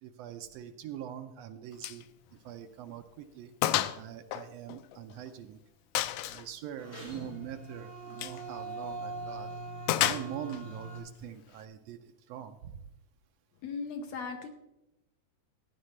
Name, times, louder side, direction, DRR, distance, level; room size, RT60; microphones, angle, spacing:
voice 1, 0.0-3.5 3.9-5.6 6.3-9.5 10.0-12.8, right 10 dB, 85° right, 7 dB, 1.5 m, -43 dB
Gunshot gunfire, 1.8-2.0 2.4-2.5 2.9-3.0 3.6-4.0 4.3-5.3 5.9-6.5 8.1-8.4 9.9-10.6, left 13 dB, 90° left, 1.5 m, -30 dB
sound 1, 6.8-11.0, right 2 dB, 20° left, 5.2 m, -41 dB
voice 2, 13.6-14.5, left 5 dB, 70° left, 5 dB, 1.8 m, -37 dB
16.0 x 10.5 x 3.2 m, 0.92 s
omnidirectional pair, 3.6 m